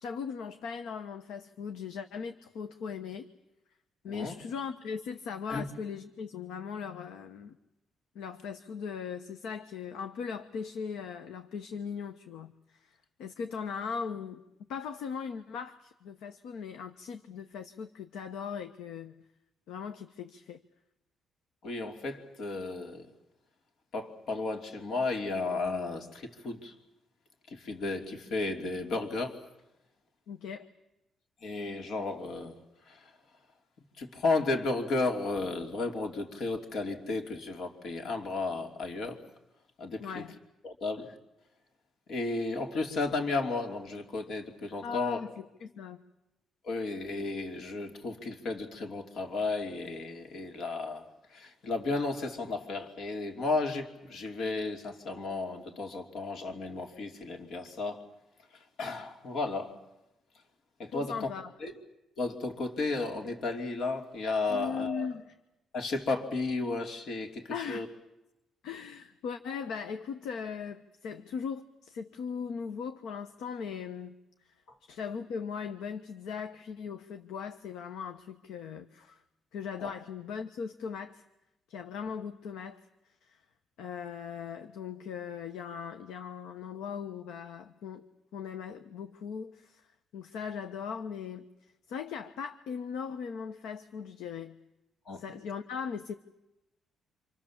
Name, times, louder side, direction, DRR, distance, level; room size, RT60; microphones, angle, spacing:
voice 1, 0.0-3.3 4.0-7.6 8.1-12.9 13.2-14.4 14.7-19.1 19.7-20.6 30.3-30.7 40.0-40.4 44.8-45.3 45.6-46.0 60.9-61.5 64.5-65.3 67.5-67.9 68.6-74.1 74.4-74.5 74.9-79.2 79.5-81.2 81.7-82.8 83.2-83.4 83.8-88.1 88.3-89.9 90.1-91.5 91.9-94.5 95.2-96.1, left 6 dB, 90° left, 8 dB, 1.1 m, -39 dB
voice 2, 21.6-23.1 23.9-26.7 27.5-29.4 31.4-33.1 34.0-39.2 39.8-40.2 40.6-41.2 42.1-45.2 46.6-58.0 58.5-59.8 60.8-61.3 61.6-61.8 62.2-65.1 65.7-67.9 79.8-80.0 81.7-81.8 95.1-95.3, left 3 dB, 65° left, 3 dB, 2.9 m, -33 dB
28.0 x 26.5 x 7.3 m, 0.94 s
cardioid pair, 90°, 0 cm